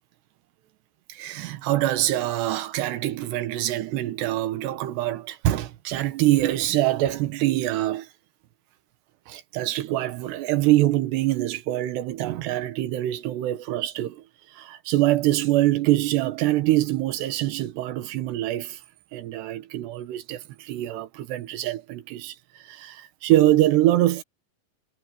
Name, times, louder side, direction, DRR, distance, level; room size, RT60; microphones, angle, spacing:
voice 1, 1.1-8.1 9.3-18.8 19.1-24.2, right 15 dB, 80° right, 3.4 m, -24 dB
omnidirectional pair, 4.8 m